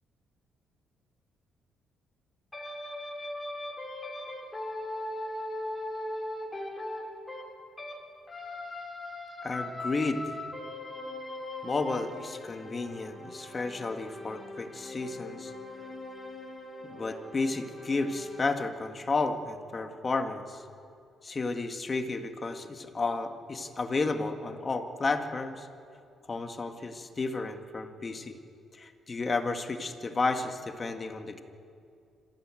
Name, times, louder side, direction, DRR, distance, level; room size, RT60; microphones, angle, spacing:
sound 1, 2.5-8.0 8.3-18.5, left 1 dB, 15° left, 5.6 m, -40 dB
voice 1, 9.4-10.3 11.6-15.5 16.8-20.6 21.2-25.7 26.3-28.4 28.7-31.4, left 3 dB, 30° left, 6 dB, 1.9 m, -32 dB
26.5 x 15.5 x 9.1 m, 2.4 s
cardioid pair, 90°, 0 cm